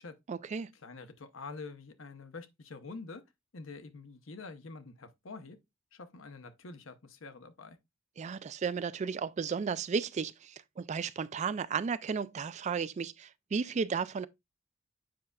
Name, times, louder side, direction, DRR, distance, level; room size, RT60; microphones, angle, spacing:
voice 1, 0.3-0.7 8.2-14.3, right 5 dB, 35° right, 0.3 m, -34 dB
voice 2, 0.8-3.2 3.5-5.6 5.9-7.8, left 3 dB, 70° left, 0.8 m, -46 dB
7.6 x 5.4 x 2.3 m
head